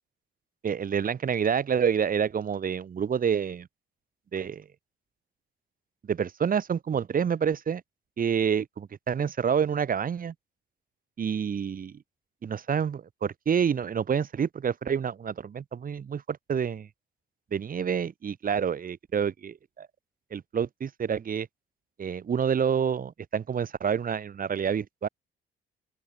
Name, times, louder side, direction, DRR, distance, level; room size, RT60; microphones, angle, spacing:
voice 1, 0.6-3.7 4.3-4.7 6.0-7.8 8.2-10.3 11.2-12.0 12.4-16.9 17.5-19.9 20.3-21.5 22.0-25.1, right 7 dB, 45° right, 1.6 m, -28 dB
open air
supercardioid pair, 65°, 20 cm